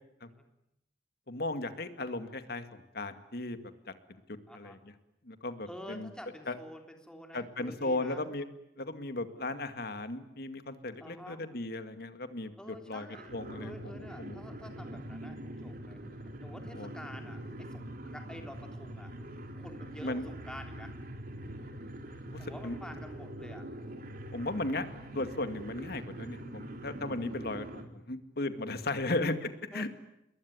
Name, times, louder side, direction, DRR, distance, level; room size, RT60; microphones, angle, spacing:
voice 1, 1.3-3.9 4.3-4.8 5.2-6.1 6.5-6.6 7.3-8.5 8.8-13.1 13.3-14.4 16.7-16.9 20.0-20.2 22.3-22.8 24.3-24.9 25.1-29.9, left 2 dB, 60° left, 9 dB, 2.2 m, -36 dB
voice 2, 4.5-4.8 5.7-8.3 11.0-11.4 12.6-13.3 13.6-16.0 16.4-19.1 19.5-21.0 22.4-23.7 24.3-24.7 29.7-29.9, left 1 dB, 5° left, 3 dB, 3.6 m, -48 dB
sound 1, 13.1-27.9, right 1 dB, 55° right, 3.2 m, -44 dB
27.5 x 22.0 x 9.6 m, 0.85 s
head